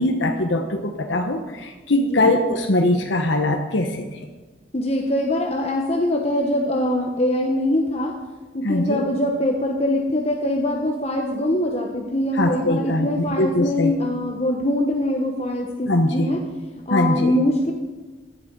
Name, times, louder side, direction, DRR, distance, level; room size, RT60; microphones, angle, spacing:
voice 1, 0.0-4.1 8.6-9.0 12.3-13.9 15.9-16.3 16.9-17.3, left 1 dB, 85° left, 3 dB, 1.2 m, -21 dB
voice 2, 2.0-2.3 4.7-8.1 8.5-16.4 16.9-17.7, left 1 dB, 35° left, 2 dB, 1.1 m, -23 dB
17.5 x 11.5 x 5.4 m, 1.3 s
head